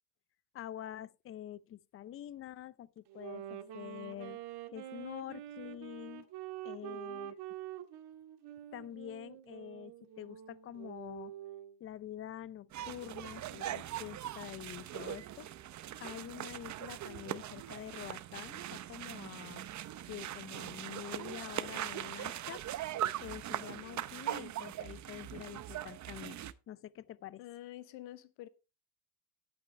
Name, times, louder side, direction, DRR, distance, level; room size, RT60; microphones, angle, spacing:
voice 1, 0.5-4.4 4.7-6.3 6.6-7.4 8.7-11.3 11.8-15.5 16.0-19.7 20.1-22.6 23.2-26.4 26.7-27.4, left 11 dB, 30° left, 0.5 m, -46 dB
Wind instrument woodwind instrument, 3.1-11.8, right 12 dB, 55° right, 1.7 m, -46 dB
voice 2, 6.8-7.3 27.4-28.5, left 14 dB, 65° left, 0.9 m, -49 dB
sound 1, 12.7-26.5, right 12 dB, 35° right, 0.7 m, -41 dB
11.0 x 8.9 x 3.2 m
cardioid pair, 120°, 48 cm